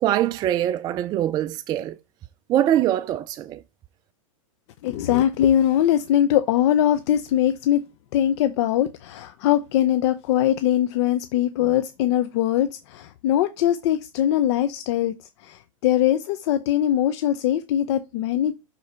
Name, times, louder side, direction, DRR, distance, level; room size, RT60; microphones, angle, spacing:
voice 1, 0.0-2.0 2.5-3.6, right 12 dB, 25° right, 0.3 m, -23 dB
voice 2, 4.8-7.8 8.1-15.1 15.4-18.5, left 11 dB, 55° left, 0.6 m, -21 dB
6.7 x 4.0 x 4.4 m
hypercardioid pair, 130°, 17 cm